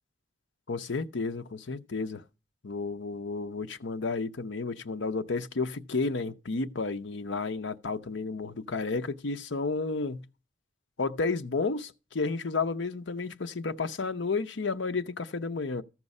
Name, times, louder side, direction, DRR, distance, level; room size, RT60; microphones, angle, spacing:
voice 1, 0.7-2.2 2.6-10.2 11.0-15.8, left 4 dB, 80° left, 0.7 m, -32 dB
14.5 x 6.0 x 5.4 m
head